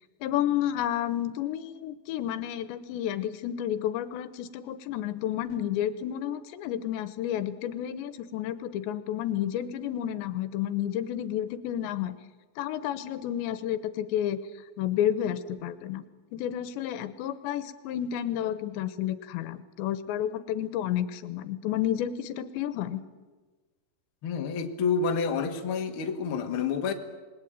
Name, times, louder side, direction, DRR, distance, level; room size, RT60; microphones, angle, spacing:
voice 1, 0.2-12.2 12.6-14.4 14.8-16.1 16.3-23.0, left 11 dB, 80° left, 12 dB, 3.2 m, -31 dB
voice 2, 24.2-26.9, left 5 dB, 50° left, 4 dB, 1.7 m, -28 dB
27.5 x 20.5 x 9.0 m, 1.3 s
omnidirectional pair, 5.2 m